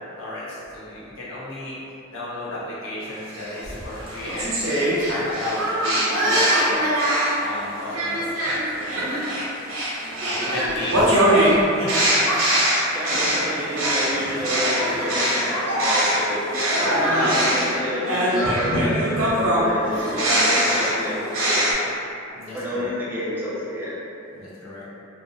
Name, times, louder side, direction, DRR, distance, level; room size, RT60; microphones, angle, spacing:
voice 1, 0.2-1.8 2.1-4.6 5.0-6.8 7.3-9.3 10.2-11.5 11.7-12.2 22.3-22.9 24.3-24.8, left 1 dB, 70° left, -8 dB, 0.7 m, -33 dB
sound 1, 3.3-7.4 7.9-16.2 16.5-21.7, right 1 dB, 85° right, 0.7 m, -22 dB
voice 2, 12.9-21.8 22.5-24.0, left 1 dB, 10° right, -8 dB, 0.3 m, -29 dB
2.5 x 2.0 x 2.5 m, 2.7 s
head